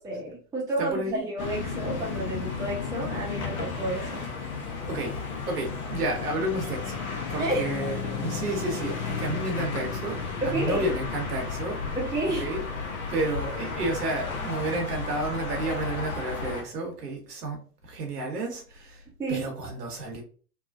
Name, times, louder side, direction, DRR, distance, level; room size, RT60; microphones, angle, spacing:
voice 1, 0.0-4.3 7.4-8.1 10.4-10.8 12.0-12.5 19.2-19.4, right 2 dB, 5° right, 0.9 m, -30 dB
voice 2, 0.8-1.3 4.9-5.2 5.5-10.2 10.4-11.8 12.3-12.6 13.1-17.6 17.8-19.0 19.3-20.2, right 2 dB, 75° right, 1.2 m, -31 dB
sound 1, 1.4-16.6, left 5 dB, 60° left, 1.0 m, -33 dB
3.1 x 2.3 x 2.4 m
figure-of-eight pair, 105°, 47 cm